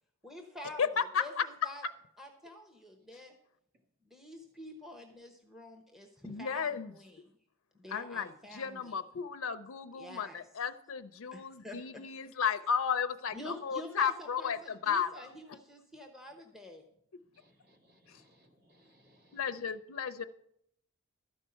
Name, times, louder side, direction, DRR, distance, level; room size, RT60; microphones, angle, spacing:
voice 1, 0.2-1.8 2.2-3.3 4.0-7.3 7.7-9.0 10.0-10.4 11.3-12.0 13.3-16.8, left 1 dB, ahead, 3 dB, 0.9 m, -48 dB
voice 2, 0.8-1.4 6.2-6.9 7.9-15.3 18.1-18.2 19.3-20.2, left 7 dB, 65° left, 9 dB, 0.5 m, -34 dB
voice 3, 17.3-19.7, equal, 50° right, 2 dB, 2.0 m, -65 dB
12.5 x 5.4 x 7.6 m, 0.74 s
head